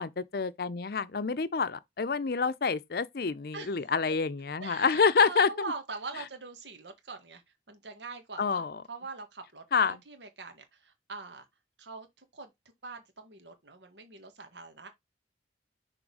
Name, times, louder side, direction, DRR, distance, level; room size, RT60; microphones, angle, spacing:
voice 1, 0.0-5.5 8.4-8.8 9.7-9.9, left 5 dB, 60° left, 0.6 m, -27 dB
voice 2, 3.5-4.1 4.6-7.4 7.7-8.6 8.9-11.5 11.8-12.5 12.8-14.9, right 4 dB, 85° right, 1.7 m, -43 dB
6.4 x 3.7 x 4.8 m
head